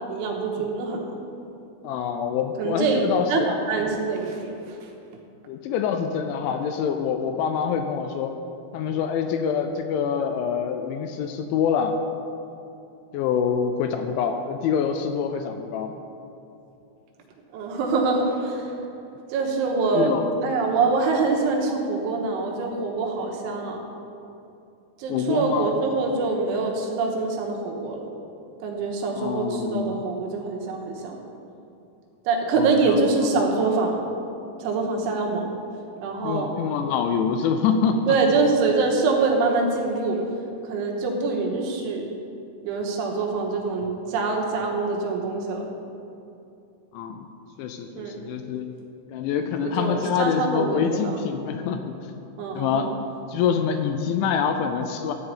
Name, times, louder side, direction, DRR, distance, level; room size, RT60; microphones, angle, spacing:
voice 1, 0.1-1.1 2.6-3.0 3.3-4.9 17.5-18.8 19.3-20.1 20.4-23.8 25.0-28.1 28.6-31.2 32.2-34.0 34.6-35.5 36.0-36.5 38.0-40.2 40.6-42.1 42.6-45.7 48.0-48.2 49.6-51.2 52.4-52.9, right 4 dB, 80° right, 0 dB, 3.5 m, -25 dB
voice 2, 1.8-3.5 5.5-8.4 8.7-11.9 13.1-15.9 19.9-20.3 25.1-25.8 29.2-30.0 32.6-33.3 36.2-38.2 46.9-47.3 47.6-48.7 49.1-52.0 52.6-52.9 53.3-55.1, left 7 dB, 80° left, 6 dB, 2.8 m, -25 dB
14.0 x 4.7 x 8.5 m, 2.7 s
omnidirectional pair, 5.7 m